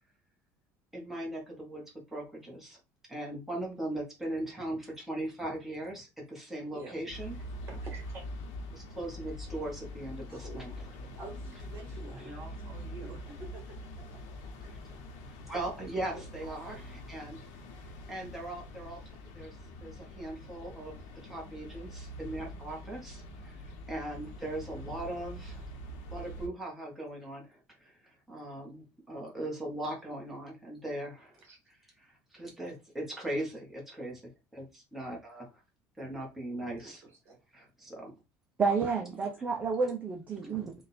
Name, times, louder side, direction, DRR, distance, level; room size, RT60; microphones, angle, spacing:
voice 1, 0.9-1.8 2.1-2.8 3.1-7.4 8.7-10.7 12.2-12.4 14.7-14.8 15.5-17.5 18.1-19.0 19.3-19.5 19.8-21.0 21.2-25.7 26.1-34.2 34.5-35.6 36.0-37.1 37.5-38.1 40.4-40.5, right 1 dB, 5° right, 1.4 m, -39 dB
sound 1, 7.1-26.5, equal, 80° left, 1.2 m, -44 dB
voice 2, 7.7-8.2 10.3-14.7 16.1-16.9 31.4-31.6 36.8-37.4, right 2 dB, 40° right, 2.1 m, -49 dB
voice 3, 38.6-40.7, right 5 dB, 25° right, 0.6 m, -30 dB
3.8 x 2.6 x 4.2 m
cardioid pair, 155°, 7 cm